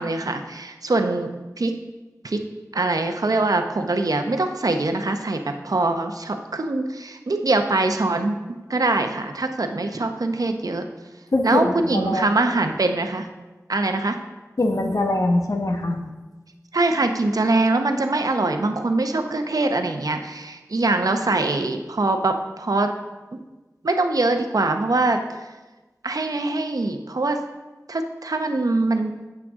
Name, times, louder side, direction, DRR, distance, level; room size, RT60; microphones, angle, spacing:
voice 1, 0.0-1.7 2.2-2.4 2.7-8.4 8.7-10.9 11.4-13.3 13.7-14.2 16.7-22.9 23.3-23.4 23.8-25.4 26.0-27.4 27.9-29.1, right 2 dB, 75° right, 6 dB, 0.7 m, -23 dB
voice 2, 11.3-12.2 12.5-12.7 14.6-16.0, left 2 dB, 65° left, 3 dB, 1.0 m, -23 dB
8.8 x 7.6 x 3.6 m, 1.2 s
wide cardioid pair, 60°, 6 cm